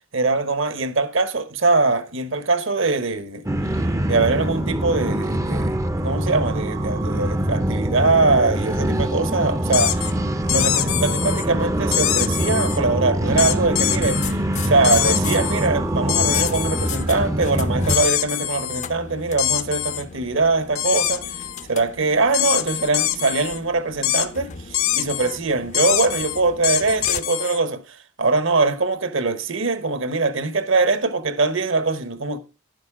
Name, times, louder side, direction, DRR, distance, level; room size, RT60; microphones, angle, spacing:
voice 1, 0.1-3.4 4.1-5.8 6.0-10.1 10.5-21.3 21.7-32.4, right 3 dB, 55° right, 1.1 m, -22 dB
sound 1, 3.4-18.0, right 1 dB, 15° right, 0.5 m, -24 dB
sound 2, 9.7-10.1 10.5-11.5 11.9-12.8 13.4-14.3 14.8-15.7 16.1-17.0 17.9-18.9 19.4-20.0 20.8-21.6 22.3-23.6 24.0-24.3 24.7-25.4 25.7-27.6, left 14 dB, 65° left, 0.9 m, -24 dB
sound 3, 14.2-27.2, left 4 dB, 35° left, 0.5 m, -37 dB
11.5 x 10.5 x 3.7 m
head